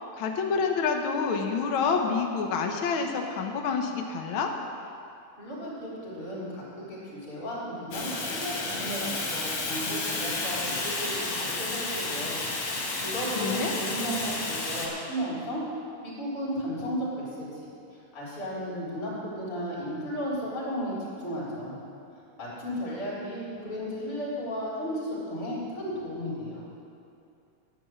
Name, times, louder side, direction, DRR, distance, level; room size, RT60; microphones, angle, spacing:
voice 1, 0.2-4.5 13.4-13.7, left 5 dB, 90° left, 3 dB, 1.1 m, -28 dB
voice 2, 5.4-12.4 13.0-15.6 16.0-17.7 18.1-21.8 22.4-26.6, equal, 40° left, -6 dB, 4.1 m, -34 dB
Fire, 7.9-14.9, left 2 dB, 60° left, 3.0 m, -31 dB
11.5 x 8.7 x 7.6 m, 2.6 s
omnidirectional pair, 3.6 m